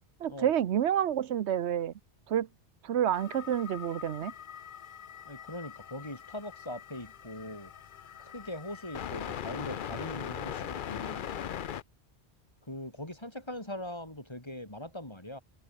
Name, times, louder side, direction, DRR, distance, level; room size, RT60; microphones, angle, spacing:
voice 1, 0.2-1.9 2.3-2.5 2.8-4.3, right 10 dB, 85° right, 1.1 m, -28 dB
sound 1, 3.1-11.8, left 9 dB, 55° left, 0.8 m, -41 dB
voice 2, 5.3-7.7 8.2-11.7 12.7-15.4, left 1 dB, 25° left, 3.8 m, -41 dB
omnidirectional pair, 1.1 m